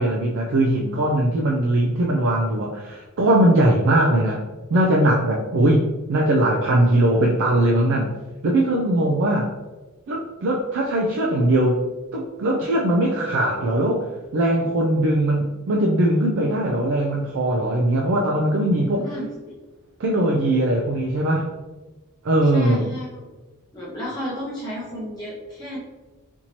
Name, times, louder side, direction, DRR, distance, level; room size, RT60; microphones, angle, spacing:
voice 1, 0.0-4.4 4.7-8.1 8.4-9.5 10.1-11.8 12.1-14.1 14.3-19.0 20.0-21.5 22.2-22.9, right 1 dB, 60° right, -1 dB, 0.4 m, -20 dB
voice 2, 18.9-19.5 22.5-23.3 23.7-25.8, equal, 20° left, -7 dB, 0.7 m, -33 dB
4.4 x 2.7 x 2.8 m, 1.2 s
head